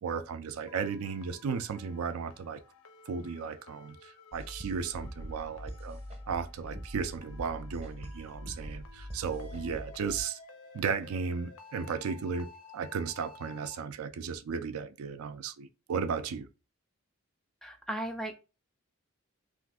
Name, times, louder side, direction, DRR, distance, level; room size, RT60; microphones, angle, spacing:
voice 1, 0.0-2.6 3.1-6.0 6.3-10.4 10.7-16.5, right 6 dB, 80° right, 0.4 m, -35 dB
sound 1, 0.7-13.8, left 3 dB, 75° left, 0.5 m, -54 dB
sound 2, 4.3-10.2, equal, 30° right, 0.6 m, -43 dB
voice 2, 17.6-18.3, right 1 dB, ahead, 0.3 m, -36 dB
2.5 x 2.4 x 3.4 m
head